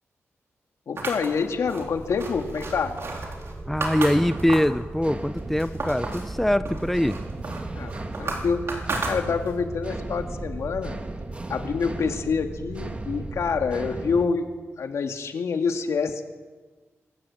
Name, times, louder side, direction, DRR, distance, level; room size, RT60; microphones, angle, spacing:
voice 1, 0.9-3.0 7.8-7.9 8.2-8.6 9.1-11.0 11.5-14.5 14.8-16.2, left 5 dB, 75° left, 5 dB, 2.2 m, -27 dB
sound 1, 1.0-4.8 5.2-6.3 6.7-9.7, right 3 dB, 60° right, 4.4 m, -33 dB
sound 2, 1.3-14.3, right 2 dB, 25° right, 1.6 m, -36 dB
voice 2, 3.7-7.2, left 1 dB, 5° left, 12 dB, 0.7 m, -23 dB
25.5 x 14.5 x 8.9 m, 1.3 s
wide cardioid pair, 100°, 5 cm